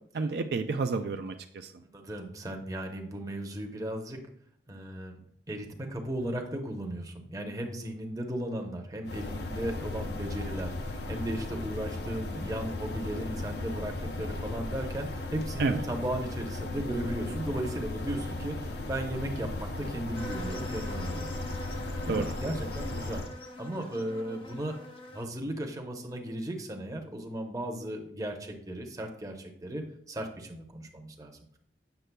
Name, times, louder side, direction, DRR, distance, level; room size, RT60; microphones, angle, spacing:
voice 1, 0.1-1.8 15.6-15.8 22.1-22.2, right 4 dB, 65° right, 6 dB, 0.4 m, -30 dB
voice 2, 1.9-4.2 4.7-21.4 22.1-23.2 23.6-24.8 25.1-31.6, right 1 dB, 20° right, 2 dB, 0.7 m, -36 dB
sound 1, 9.1-23.3, left 2 dB, 75° left, 0.7 m, -36 dB
sound 2, 20.1-25.2, left 1 dB, 30° left, 0.8 m, -43 dB
8.0 x 6.5 x 2.2 m, 0.67 s
head